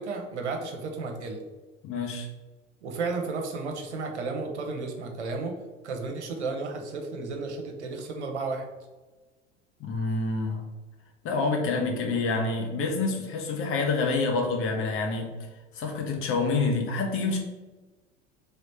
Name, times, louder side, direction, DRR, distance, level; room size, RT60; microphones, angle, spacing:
voice 1, 0.0-1.4 2.8-5.5 5.8-8.7, right 3 dB, 70° right, 3 dB, 0.9 m, -33 dB
voice 2, 1.8-2.3 9.8-10.6 11.2-15.3 15.7-17.4, left 3 dB, 40° left, 2 dB, 1.0 m, -27 dB
3.3 x 3.1 x 4.2 m, 1.2 s
figure-of-eight pair, 75°, 35 cm